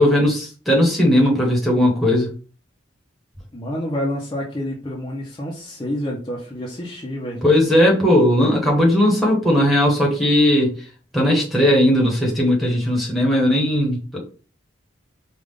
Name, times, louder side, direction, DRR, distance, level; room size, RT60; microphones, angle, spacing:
voice 1, 0.0-2.4 7.4-10.7 11.1-14.2, left 1 dB, ahead, -3 dB, 1.2 m, -17 dB
voice 2, 3.5-7.4, left 1 dB, 25° left, -4 dB, 0.7 m, -28 dB
5.0 x 2.4 x 3.6 m, 0.40 s
head